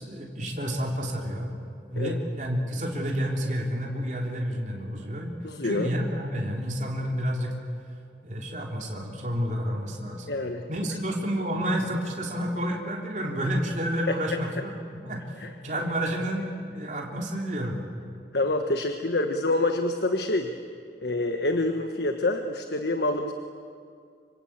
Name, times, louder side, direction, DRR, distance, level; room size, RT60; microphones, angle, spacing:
voice 1, 0.0-1.5 1.9-5.3 5.6-7.6 8.2-10.3 10.7-15.2 15.6-17.8, equal, 45° right, -1 dB, 3.5 m, -30 dB
voice 2, 5.4-5.9 10.3-10.7 14.1-14.4 15.4-15.5 18.3-20.5 21.0-23.3, left 2 dB, 70° left, 5 dB, 1.4 m, -27 dB
26.0 x 25.5 x 8.8 m, 2.3 s
head